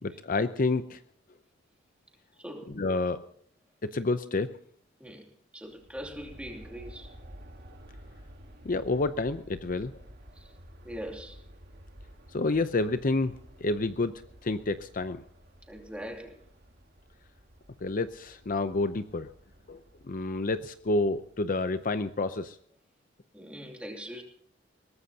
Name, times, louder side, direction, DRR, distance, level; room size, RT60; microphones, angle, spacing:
voice 1, 0.0-1.0 2.8-3.2 3.8-4.6 8.6-9.9 12.3-13.4 13.6-14.1 14.4-15.2 17.8-19.3 19.7-19.8 20.1-22.6, left 3 dB, 45° left, 0.7 m, -29 dB
voice 2, 2.4-2.7 5.0-5.3 5.5-7.1 10.3-10.5 10.8-11.4 15.7-16.4 23.3-24.2, equal, 5° right, 2.8 m, -41 dB
Aircraft, 5.6-21.7, equal, 55° right, 2.0 m, -52 dB
22.0 x 18.0 x 2.8 m
head